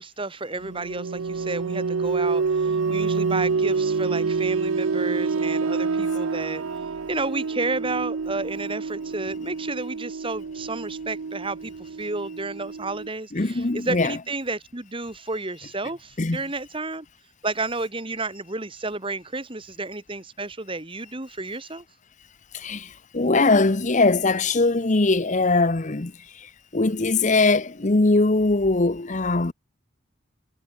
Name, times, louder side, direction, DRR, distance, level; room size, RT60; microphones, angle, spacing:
voice 1, 0.0-6.6 7.1-17.1 17.4-21.8, right 3 dB, 25° right, 2.0 m, -31 dB
sound 1, 0.6-13.1, right 4 dB, 85° right, 0.6 m, -27 dB
voice 2, 13.3-14.1 16.2-16.4 22.5-29.5, left 3 dB, 35° left, 0.9 m, -21 dB
head